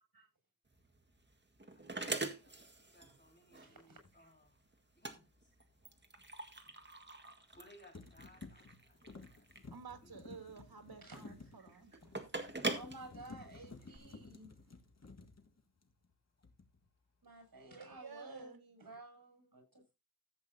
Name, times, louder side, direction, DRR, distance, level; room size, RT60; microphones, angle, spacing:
sound 1, 0.7-14.0, right 2 dB, 30° right, 1.8 m, -44 dB
voice 1, 1.7-4.7 4.9-5.7 7.5-9.5 10.0-10.1 13.9-14.2, left 1 dB, 30° left, 6.6 m, -64 dB
voice 2, 3.6-4.3 11.0-11.3 11.7-11.8 12.7-14.5 17.2-19.9, right 2 dB, 65° right, 7.1 m, -54 dB
sound 2, 4.0-4.1 7.3-7.6 7.9-16.1 16.4-16.9, left 3 dB, 45° left, 1.8 m, -55 dB
voice 3, 9.7-11.9 17.7-18.6, right 5 dB, 90° right, 1.9 m, -52 dB
15.5 x 8.4 x 2.8 m
wide cardioid pair, 85°, 37 cm